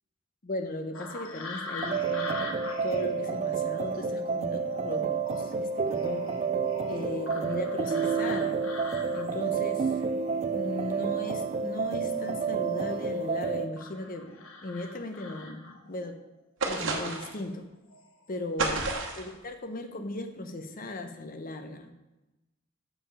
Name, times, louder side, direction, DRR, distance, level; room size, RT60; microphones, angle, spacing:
voice 1, 0.4-6.2 6.9-8.6 9.1-10.1 10.5-16.2 16.7-17.7 18.3-18.8 19.2-21.9, left 1 dB, 45° left, 7 dB, 0.7 m, -37 dB
sound 1, 0.9-11.0 11.2-13.2 13.8-16.0 17.2-17.4 17.9-18.4 18.6-18.9, left 2 dB, 75° left, 1.1 m, -43 dB
sound 2, 1.8-13.7, right 5 dB, 35° right, 0.3 m, -30 dB
sound 3, 16.6-17.4 18.6-19.3, right 3 dB, 65° right, 1.2 m, -30 dB
7.1 x 5.6 x 5.5 m, 1.0 s
head